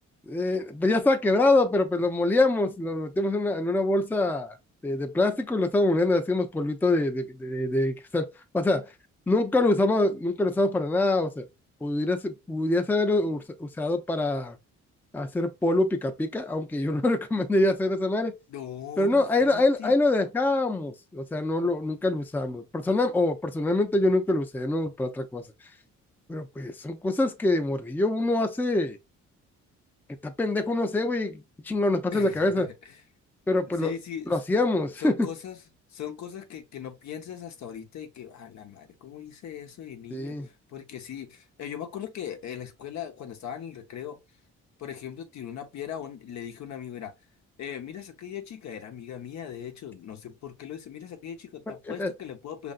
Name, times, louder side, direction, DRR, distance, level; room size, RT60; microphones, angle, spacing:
voice 1, 0.3-4.5 4.8-8.3 8.5-8.9 9.3-11.4 11.8-14.6 15.1-18.3 19.0-25.4 26.3-29.0 30.2-32.7 33.5-33.9 34.3-35.1 40.1-40.5 52.0-52.1, left 2 dB, 5° left, 0.5 m, -25 dB
voice 2, 18.5-20.0 32.1-33.0 33.8-34.4 35.0-35.6 35.9-44.2 44.8-47.1 47.6-52.7, left 9 dB, 65° left, 0.9 m, -39 dB
5.4 x 2.6 x 2.4 m
cardioid pair, 90°, 30 cm